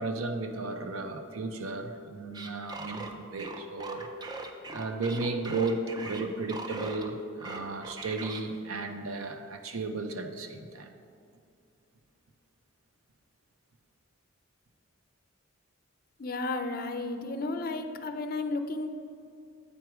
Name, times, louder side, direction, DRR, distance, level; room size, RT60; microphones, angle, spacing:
voice 1, 0.0-4.1 4.7-10.9, right 3 dB, 85° right, 6 dB, 0.6 m, -34 dB
sound 1, 2.3-7.1 7.4-8.4, right 2 dB, 20° right, 0.4 m, -40 dB
voice 2, 16.2-18.9, left 2 dB, 45° left, 8 dB, 0.5 m, -33 dB
8.4 x 4.6 x 4.8 m, 2.4 s
head